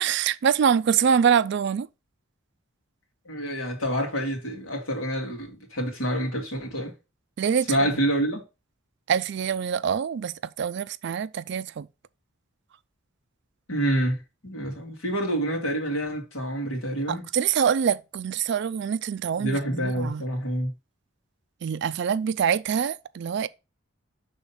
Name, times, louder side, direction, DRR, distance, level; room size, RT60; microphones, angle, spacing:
voice 1, 0.0-1.9 7.4-7.7 9.1-11.9 17.1-20.2 21.6-23.5, right 7 dB, 55° right, 0.3 m, -25 dB
voice 2, 3.3-6.9 7.7-8.4 13.7-14.2 14.4-17.3 19.4-20.7, right 1 dB, 75° left, 2.0 m, -27 dB
5.6 x 3.5 x 5.6 m
head